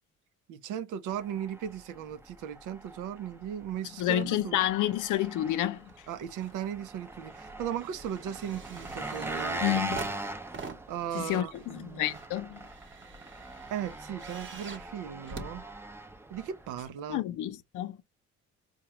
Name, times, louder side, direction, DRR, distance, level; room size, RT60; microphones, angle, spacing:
voice 1, 0.5-4.6 6.1-10.1 10.9-12.2 13.7-15.6 16.3-17.2, right 9 dB, 90° right, 0.5 m, -37 dB
Engine, 1.1-16.9, right 2 dB, 10° right, 0.5 m, -41 dB
voice 2, 4.0-5.9 9.6-10.0 11.1-12.7 17.1-18.0, left 13 dB, 80° left, 0.6 m, -29 dB
sound 1, 5.9-6.6 6.9-16.3 17.1-17.2, right 4 dB, 40° right, 0.9 m, -46 dB
4.7 x 2.2 x 2.9 m
cardioid pair, 90°, 30 cm